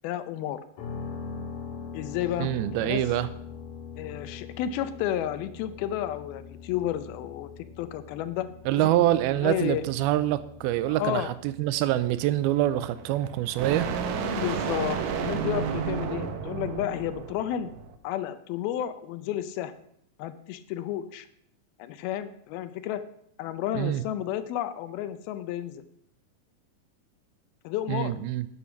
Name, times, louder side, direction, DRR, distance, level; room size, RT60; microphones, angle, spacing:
voice 1, 0.0-0.6 1.9-2.5 2.8-3.0 4.0-7.5 7.8-8.5 8.8-8.9 9.3-9.8 11.0-11.3 14.4-17.7 18.0-19.7 20.2-21.3 21.8-23.0 23.4-25.8 27.6-28.1, left 11 dB, 80° left, 12 dB, 2.5 m, -31 dB
sound 1, 0.8-16.6, left 5 dB, 65° left, 3.3 m, -44 dB
voice 2, 2.4-3.3 8.7-13.9 23.7-24.0 27.9-28.5, right 14 dB, 90° right, 14 dB, 2.5 m, -25 dB
sound 2, 13.0-18.0, right 6 dB, 70° right, 1.8 m, -32 dB
11.5 x 8.4 x 5.8 m, 0.69 s
omnidirectional pair, 4.4 m